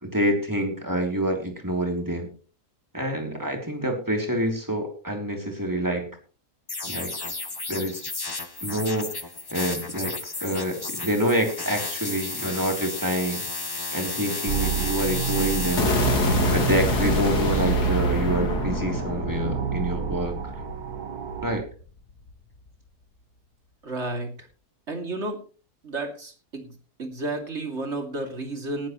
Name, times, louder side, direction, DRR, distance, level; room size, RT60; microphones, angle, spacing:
voice 1, 0.0-2.3 2.9-6.2 6.9-7.1 7.7-8.0 8.6-9.2 9.5-13.5 13.9-15.9 16.5-20.5 21.4-21.6, right 1 dB, 10° right, 3 dB, 3.2 m, -27 dB
sound 1, 6.7-18.1, left 3 dB, 20° left, 0.8 m, -33 dB
sound 2, 14.5-21.6, right 10 dB, 70° right, 1.6 m, -29 dB
sound 3, 15.8-21.8, left 3 dB, 80° left, 2.7 m, -27 dB
voice 2, 23.8-24.3 24.9-25.4 25.8-26.7 27.0-28.9, right 2 dB, 45° right, 4 dB, 2.9 m, -31 dB
19.0 x 11.5 x 3.1 m, 0.36 s
omnidirectional pair, 1.7 m